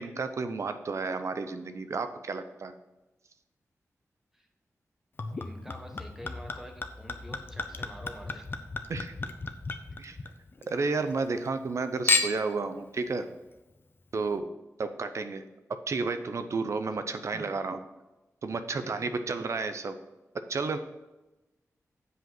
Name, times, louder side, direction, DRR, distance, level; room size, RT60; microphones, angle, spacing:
voice 1, 0.0-2.7 8.9-9.1 10.0-10.2 10.7-13.3 14.1-14.5 14.8-15.5 15.9-17.8 18.4-20.0 20.3-20.8, right 4 dB, 60° right, 9 dB, 0.6 m, -32 dB
Chink clink / Liquid, 5.2-10.7 11.0-11.7 12.1-12.6 13.3-13.4, left 3 dB, 40° left, 0.6 m, -33 dB
voice 2, 5.3-8.5 9.9-10.0 17.1-17.5 18.8-19.1, equal, 5° right, 3 dB, 1.1 m, -47 dB
8.1 x 5.0 x 5.9 m, 1.0 s
wide cardioid pair, 135°, 6 cm